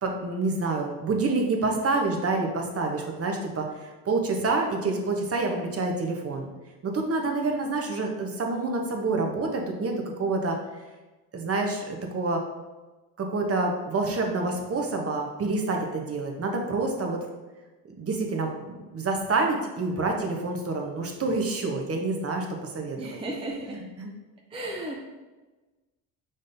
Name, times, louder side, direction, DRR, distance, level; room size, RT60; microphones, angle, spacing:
voice 1, 0.0-6.5 6.8-10.6 11.3-12.4 13.2-17.2 18.0-22.4 22.7-23.2 23.7-24.1, right 3 dB, 35° right, 2 dB, 0.9 m, -27 dB
voice 2, 23.0-23.8 24.5-25.0, right 1 dB, 15° right, -2 dB, 0.6 m, -34 dB
5.1 x 3.8 x 2.6 m, 1.2 s
supercardioid pair, 85°, 42 cm